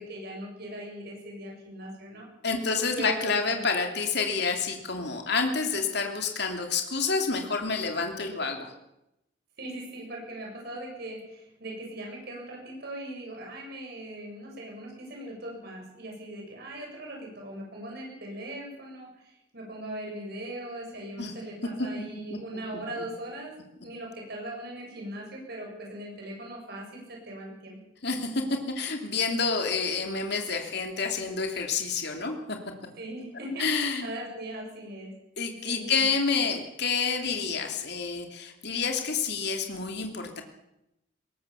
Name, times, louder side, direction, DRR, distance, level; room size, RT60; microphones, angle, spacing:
voice 1, 0.0-2.3 3.0-3.6 9.6-23.5 23.8-27.8 33.0-33.7 34.0-35.1 35.6-36.0, right 1 dB, 50° right, -1 dB, 7.7 m, -39 dB
voice 2, 2.4-8.7 21.2-21.3 21.8-21.9 22.3-22.4 28.0-32.6 33.6-34.1 35.4-40.4, left 4 dB, 55° left, 4 dB, 3.0 m, -28 dB
21.0 x 18.0 x 7.2 m, 0.86 s
head